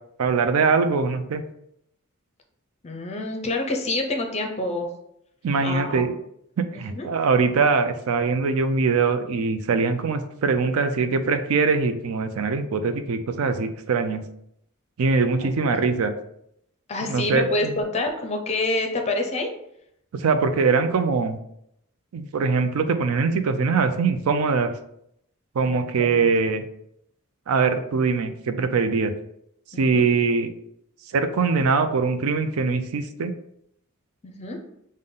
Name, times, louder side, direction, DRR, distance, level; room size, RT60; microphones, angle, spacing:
voice 1, 0.2-1.4 5.4-6.1 6.6-14.2 15.0-16.1 17.0-17.7 20.1-21.4 22.1-24.7 25.6-26.6 27.5-29.1 29.8-30.5 31.1-33.3, right 4 dB, 70° right, 9 dB, 0.4 m, -22 dB
voice 2, 2.8-4.9 5.6-6.1 6.7-7.1 15.6-15.7 16.9-19.5 25.6-26.3 29.7-30.0 34.2-34.6, left 2 dB, 30° left, 4 dB, 0.5 m, -27 dB
5.4 x 2.1 x 3.7 m, 0.74 s
head